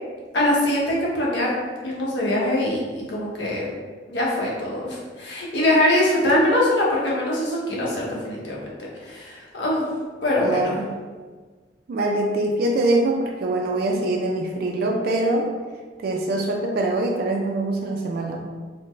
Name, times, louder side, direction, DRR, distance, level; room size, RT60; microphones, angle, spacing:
voice 1, 0.3-1.5 1.8-3.7 4.1-9.9 10.2-10.7, left 1 dB, 85° left, -4 dB, 0.9 m, -23 dB
voice 2, 10.4-10.9 11.9-15.5 16.0-18.5, right 2 dB, 60° right, 1 dB, 0.4 m, -23 dB
3.9 x 2.1 x 3.1 m, 1.4 s
head